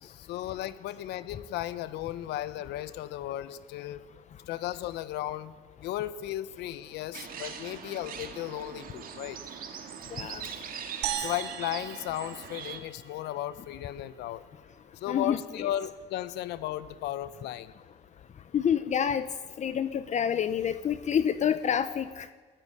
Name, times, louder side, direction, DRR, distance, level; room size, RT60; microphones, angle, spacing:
voice 1, 0.0-4.0 4.5-5.5 5.8-9.4 11.2-14.4 15.0-17.7, left 13 dB, 85° left, 14 dB, 1.1 m, -35 dB
sound 1, 7.1-12.8, right 8 dB, 60° right, 2.4 m, -42 dB
voice 2, 10.1-10.4 11.2-11.3 15.1-15.7 18.5-19.3 19.6-22.3, left 8 dB, 45° left, 12 dB, 0.9 m, -28 dB
sound 2, 11.0-13.5, right 11 dB, 80° right, 1.6 m, -37 dB
19.5 x 14.0 x 9.9 m, 1.4 s
cardioid pair, 110°, 17 cm